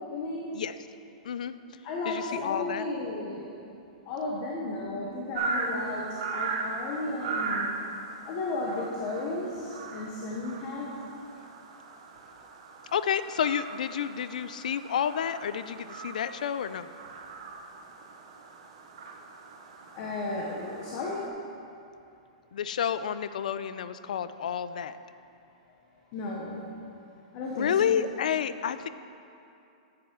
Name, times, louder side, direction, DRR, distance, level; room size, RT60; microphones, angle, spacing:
voice 1, 0.1-0.5 1.8-3.6 4.1-7.7 8.3-10.9 19.9-21.2 26.1-26.6 27.3-28.0, left 2 dB, 30° left, -3 dB, 0.9 m, -34 dB
voice 2, 2.0-2.9 12.9-16.9 22.5-25.0 27.5-28.9, left 8 dB, 80° left, 13 dB, 0.3 m, -30 dB
sound 1, 5.3-21.3, right 4 dB, 45° right, 0.7 m, -38 dB
9.4 x 7.6 x 3.7 m, 2.7 s
supercardioid pair, 175°, 4 cm